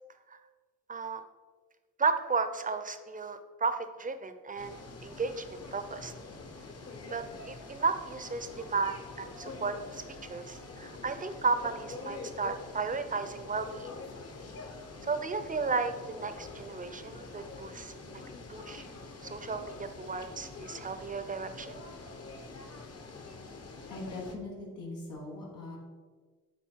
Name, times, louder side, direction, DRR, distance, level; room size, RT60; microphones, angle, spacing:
voice 1, 0.9-1.2 2.0-4.8 5.0-6.1 7.1-10.0 10.3-13.9 15.0-18.2 18.5-18.8 19.2-21.7, right 4 dB, 25° right, 10 dB, 0.6 m, -34 dB
sound 1, 4.6-24.3, left 3 dB, 50° left, 1.1 m, -45 dB
voice 2, 23.9-25.8, left 2 dB, 90° left, -5 dB, 1.8 m, -41 dB
9.2 x 3.8 x 4.6 m, 1.5 s
cardioid pair, 95°, 33 cm